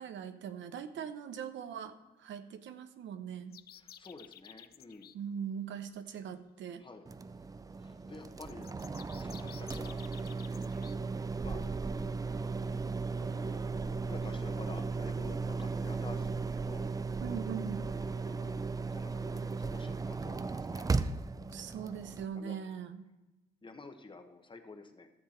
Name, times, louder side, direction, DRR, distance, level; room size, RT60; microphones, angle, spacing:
voice 1, 0.0-3.6 5.1-6.8 17.2-17.9 21.5-23.1, right 8 dB, 70° right, 10 dB, 0.8 m, -41 dB
sound 1, 3.5-5.1 8.4-10.9, left 10 dB, 50° left, 0.5 m, -53 dB
voice 2, 3.8-5.1 6.8-7.1 7.8-8.7 9.2-10.0 11.4-11.6 12.5-16.8 18.3-20.9 22.3-22.6 23.6-25.1, left 3 dB, 25° left, 6 dB, 1.2 m, -51 dB
sound 2, 7.1-22.3, right 4 dB, 20° right, 0.4 m, -36 dB
13.5 x 6.9 x 4.4 m, 1.0 s
cardioid pair, 90°, 20 cm